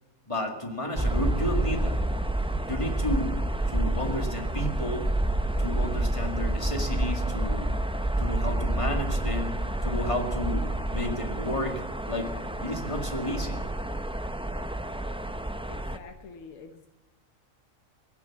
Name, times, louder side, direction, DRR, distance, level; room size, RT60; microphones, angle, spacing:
voice 1, 0.3-2.0 2.7-3.4 3.7-5.1 5.6-7.7 8.2-9.6 9.8-13.6, left 1 dB, 25° left, 3 dB, 2.2 m, -32 dB
sound 1, 1.0-16.0, right 1 dB, 10° right, 0.3 m, -29 dB
voice 2, 15.6-16.9, left 4 dB, 75° left, 5 dB, 1.4 m, -47 dB
16.5 x 11.5 x 7.3 m, 1.1 s
omnidirectional pair, 1.4 m